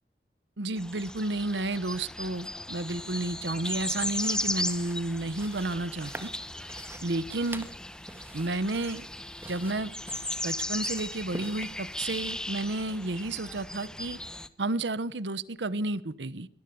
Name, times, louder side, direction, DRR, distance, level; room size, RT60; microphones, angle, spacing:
voice 1, 0.6-6.3 7.0-7.7 8.3-9.0 9.5-9.9 10.4-14.2 14.6-16.5, right 2 dB, 90° right, 1.0 m, -31 dB
sound 1, 0.8-14.5, left 1 dB, 5° left, 1.1 m, -37 dB
sound 2, 3.8-12.6, right 1 dB, 15° right, 1.7 m, -47 dB
23.0 x 18.0 x 7.0 m
head